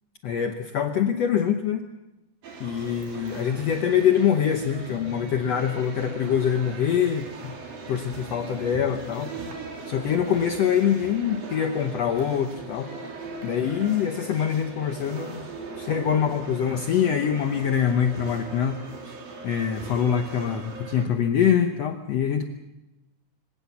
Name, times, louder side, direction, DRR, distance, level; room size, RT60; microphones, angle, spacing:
voice 1, 0.2-1.8 2.6-7.5 7.9-9.4 9.9-12.9 13.4-15.4 15.8-18.8 19.1-19.2 19.4-22.5, left 8 dB, 75° left, 6 dB, 1.5 m, -24 dB
sound 1, 2.4-21.1, right 4 dB, 70° right, 4.9 m, -40 dB
25.0 x 17.5 x 7.1 m, 0.98 s
omnidirectional pair, 4.3 m